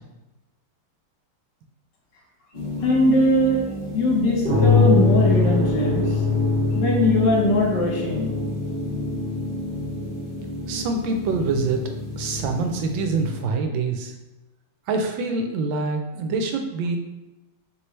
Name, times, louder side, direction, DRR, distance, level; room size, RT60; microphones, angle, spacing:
sound 1, 2.5-13.4, left 3 dB, 25° left, 1.4 m, -24 dB
voice 1, 2.8-3.6 3.9-6.1 6.7-8.3, left 1 dB, 70° left, -2 dB, 1.6 m, -20 dB
voice 2, 10.7-14.1 14.9-17.0, right 3 dB, 85° right, 5 dB, 1.4 m, -25 dB
4.6 x 3.2 x 3.1 m, 1.0 s
omnidirectional pair, 2.0 m